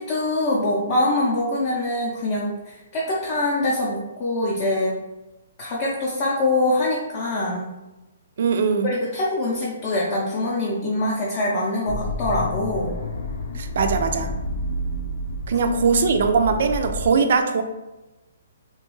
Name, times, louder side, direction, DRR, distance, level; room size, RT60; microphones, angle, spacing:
voice 1, 0.0-5.0 5.6-7.6 8.8-12.9, left 1 dB, 25° left, -5 dB, 0.5 m, -24 dB
voice 2, 8.4-8.9 13.5-14.3 15.5-17.6, right 5 dB, 55° right, 6 dB, 0.3 m, -20 dB
sound 1, 11.9-17.1, left 1 dB, 85° left, 0.5 m, -30 dB
3.0 x 2.3 x 3.0 m, 1.0 s
hypercardioid pair, 160°, 0 cm